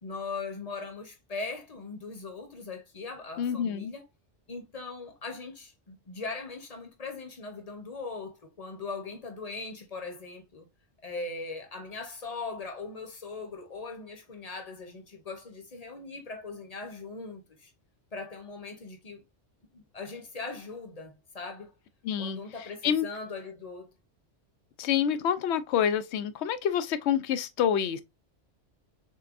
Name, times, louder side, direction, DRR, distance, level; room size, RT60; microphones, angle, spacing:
voice 1, 0.0-4.0 4.5-10.7 11.0-17.7 18.1-19.2 19.7-21.7 22.2-23.9, left 3 dB, 35° left, 0.9 m, -40 dB
voice 2, 3.4-3.9 22.0-22.4 22.8-23.1 24.8-28.0, left 8 dB, 70° left, 0.8 m, -27 dB
6.5 x 2.2 x 2.4 m
omnidirectional pair, 1.2 m